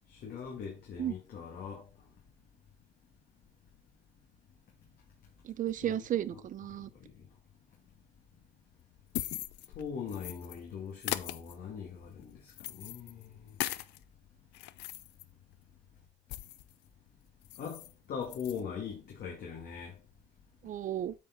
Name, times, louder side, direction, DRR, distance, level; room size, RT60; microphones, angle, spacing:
voice 1, 0.1-1.8 5.8-6.4 7.0-7.1 9.8-12.4 12.7-13.3 17.6-17.8 18.1-19.9, left 7 dB, 60° left, 2.3 m, -41 dB
voice 2, 5.4-6.9 20.6-21.1, right 11 dB, 50° right, 0.6 m, -33 dB
sound 1, 8.8-10.6 11.0-14.0 14.4-16.7 17.1-17.2 17.4-17.9 18.2-18.6, left 16 dB, 80° left, 0.5 m, -40 dB
8.4 x 4.8 x 4.0 m
cardioid pair, 110°, 17 cm